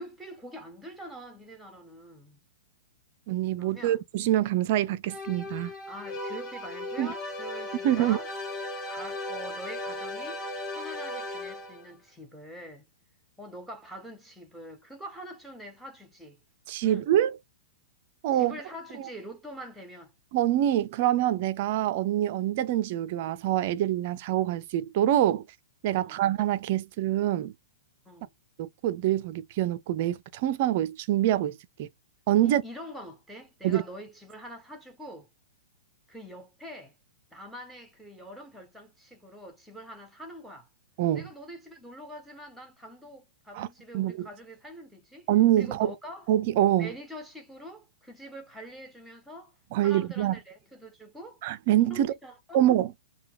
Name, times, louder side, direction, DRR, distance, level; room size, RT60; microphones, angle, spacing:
voice 1, 0.0-2.4 3.6-4.0 5.9-8.3 8.9-10.4 10.7-12.9 13.4-16.4 16.8-17.1 18.3-20.1 26.0-26.2 28.0-28.3 32.4-35.3 36.1-36.9 37.3-40.7 41.1-45.3 45.6-46.3 46.8-49.5 49.8-51.4 51.9-52.6, equal, ahead, 1.1 m, -44 dB
voice 2, 3.3-5.7 7.0-7.1 7.8-8.2 16.7-17.3 18.2-18.5 20.3-25.4 25.8-27.5 28.6-31.9 32.3-32.6 33.6-33.8 41.0-41.2 43.5-43.7 43.9-44.3 45.3-45.9 46.3-46.9 49.7-50.4 51.4-52.1 52.5-52.9, right 12 dB, 45° right, 0.5 m, -25 dB
sound 1, 5.1-11.9, left 2 dB, 25° left, 1.7 m, -36 dB
4.4 x 2.3 x 3.5 m
figure-of-eight pair, 105°, 0 cm